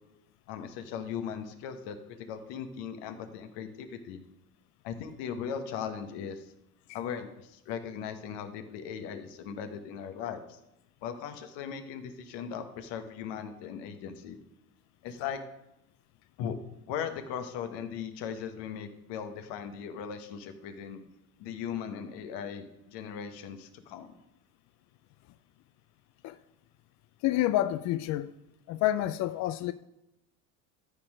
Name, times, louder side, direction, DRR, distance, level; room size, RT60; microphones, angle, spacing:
voice 1, 0.5-4.2 4.8-6.5 6.9-10.6 11.0-14.4 15.0-15.4 16.4-16.6 16.9-21.0 21.4-24.1, left 7 dB, 60° left, 1.3 m, -38 dB
voice 2, 27.2-28.3 28.7-29.7, left 14 dB, 40° left, 0.4 m, -28 dB
13.5 x 4.4 x 5.0 m
hypercardioid pair, 90°, 46 cm